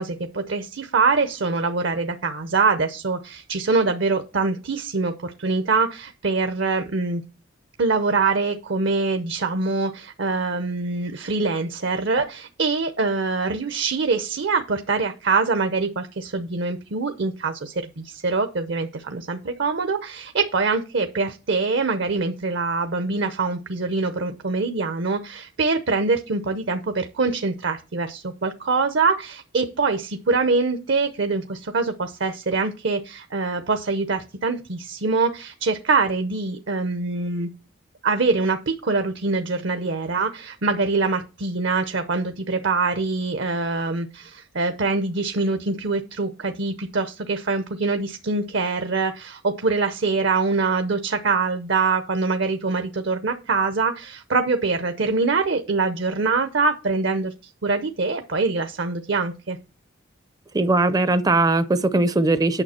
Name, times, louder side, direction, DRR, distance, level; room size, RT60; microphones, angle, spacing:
voice 1, 0.0-7.2 7.8-37.5 38.0-57.3 57.6-59.6, right 4 dB, 60° right, 0.7 m, -24 dB
voice 2, 60.5-62.6, right 2 dB, 20° right, 0.5 m, -19 dB
9.0 x 6.7 x 4.3 m
head